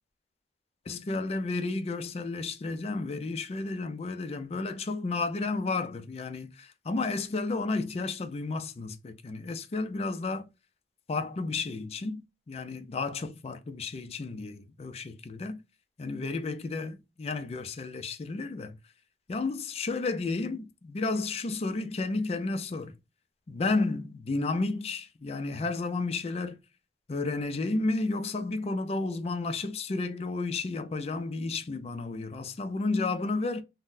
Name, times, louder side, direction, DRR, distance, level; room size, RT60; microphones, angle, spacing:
voice 1, 0.9-10.5 11.1-15.6 16.0-18.8 19.3-22.9 23.5-26.6 27.1-33.6, left 3 dB, 35° left, 0.4 m, -32 dB
3.8 x 2.1 x 2.5 m
head